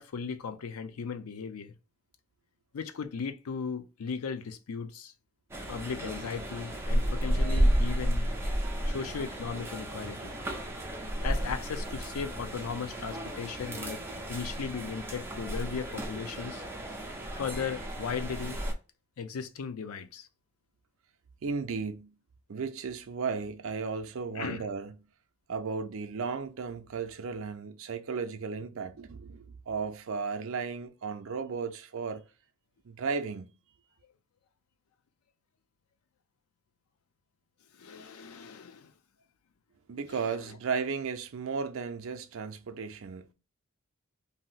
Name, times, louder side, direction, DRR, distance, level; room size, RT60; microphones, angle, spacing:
voice 1, 0.0-1.7 2.7-5.1 5.7-8.3 8.9-10.3 11.2-14.0 14.3-16.6 17.4-18.6 19.2-20.3 24.3-24.7 37.7-38.9 40.2-40.5, left 6 dB, 85° left, 0.4 m, -37 dB
sound 1, 5.5-18.7, equal, 10° right, 0.5 m, -32 dB
voice 2, 21.4-22.2 22.5-25.0 25.5-32.2 32.8-33.5 39.9-43.3, right 5 dB, 70° right, 0.4 m, -35 dB
2.6 x 2.0 x 3.8 m
head